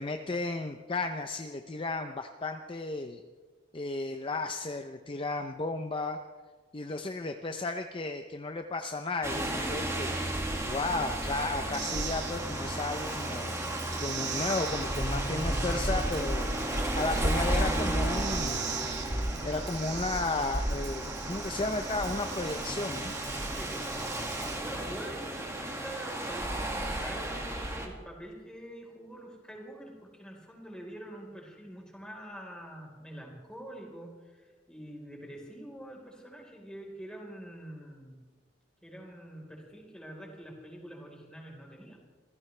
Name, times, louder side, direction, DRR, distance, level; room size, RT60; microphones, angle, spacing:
voice 1, 0.0-3.2 3.7-6.2 6.7-10.2 10.6-16.5 16.9-18.7 19.4-23.1, left 3 dB, 30° left, 6 dB, 0.7 m, -34 dB
sound 1, 9.2-27.9, right 1 dB, 15° right, 2.0 m, -33 dB
sound 2, 11.7-24.6, right 8 dB, 65° right, 2.0 m, -42 dB
Tambourine, 13.1-24.8, right 6 dB, 50° right, 5.9 m, -55 dB
voice 2, 23.5-23.8 24.1-38.2 38.8-42.2, right 1 dB, 5° left, -1 dB, 4.2 m, -45 dB
27.0 x 15.5 x 3.3 m, 1.4 s
head